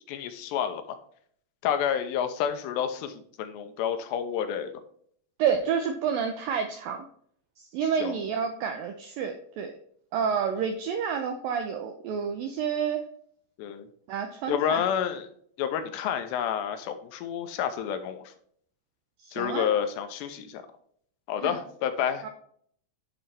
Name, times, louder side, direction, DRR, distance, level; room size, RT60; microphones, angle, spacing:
voice 1, 0.1-1.0 1.6-4.7 7.8-8.2 13.6-13.9 14.5-15.3 15.6-18.3 19.3-20.6 21.3-22.3, left 9 dB, 85° left, 8 dB, 3.0 m, -29 dB
voice 2, 5.4-7.1 7.6-9.7 10.1-13.1 14.1-14.8 19.2-19.7 21.4-21.5 22.2-22.3, right 7 dB, 80° right, 5 dB, 2.0 m, -29 dB
11.0 x 4.5 x 3.4 m, 0.62 s
omnidirectional pair, 4.9 m